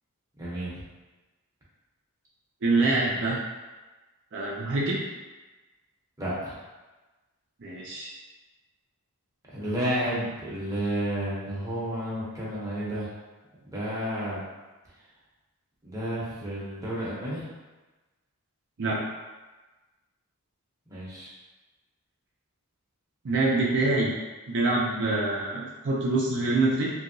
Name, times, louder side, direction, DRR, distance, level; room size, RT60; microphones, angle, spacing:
voice 1, 0.4-0.7 6.2-6.6 9.5-13.1 13.6-14.4 15.8-17.5 20.9-21.3, equal, 15° right, -8 dB, 0.7 m, -31 dB
voice 2, 2.6-3.4 4.3-5.0 7.6-8.1 18.8-19.0 23.2-24.1 24.5-26.9, right 2 dB, 55° right, -5 dB, 0.5 m, -25 dB
2.8 x 2.7 x 2.6 m, 1.2 s
head